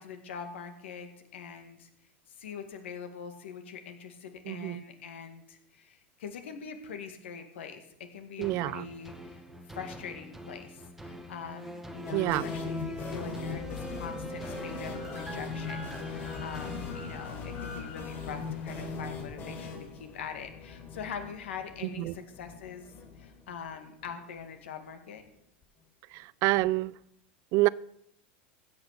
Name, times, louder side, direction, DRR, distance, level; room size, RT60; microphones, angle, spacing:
voice 1, 0.0-1.9 2.3-9.4 9.7-22.9 23.2-25.2, left 6 dB, 85° left, 1.9 m, -43 dB
voice 2, 4.5-4.8 8.4-8.9 12.1-12.5 21.8-22.2 26.1-26.9 27.5-27.7, right 20 dB, 50° right, 0.4 m, -27 dB
sound 1, 8.4-17.8 18.3-18.4, right 1 dB, 5° right, 1.3 m, -43 dB
sound 2, 12.1-23.8 24.0-24.1 24.4-24.5 26.6-26.7, left 5 dB, 40° left, 4.5 m, -40 dB
sound 3, 13.8-19.1, left 3 dB, 70° left, 4.0 m, -49 dB
15.5 x 6.0 x 6.6 m
hypercardioid pair, 110°, 6 cm